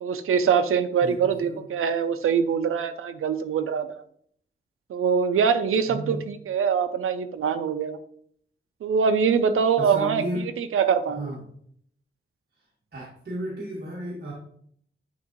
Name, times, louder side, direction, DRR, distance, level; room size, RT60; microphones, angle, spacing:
voice 1, 0.0-4.0 4.9-8.0 8.8-10.2 10.6-11.3, right 6 dB, 90° right, 9 dB, 0.5 m, -23 dB
voice 2, 1.0-1.7 5.9-6.2 9.8-10.4 11.2-11.4 12.9-14.3, right 1 dB, 50° right, -5 dB, 1.7 m, -33 dB
9.5 x 3.5 x 3.1 m, 0.64 s
wide cardioid pair, 120°, 21 cm